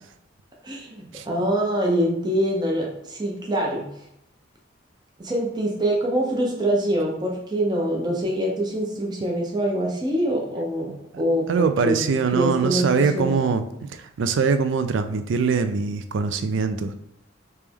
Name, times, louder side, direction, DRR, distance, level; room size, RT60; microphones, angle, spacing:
voice 1, 0.6-3.8 5.2-10.9 11.2-13.4, right 1 dB, 20° right, -1 dB, 0.6 m, -24 dB
voice 2, 11.5-13.6 13.9-16.9, right 5 dB, 70° right, 9 dB, 0.4 m, -23 dB
3.4 x 3.0 x 3.4 m, 0.79 s
head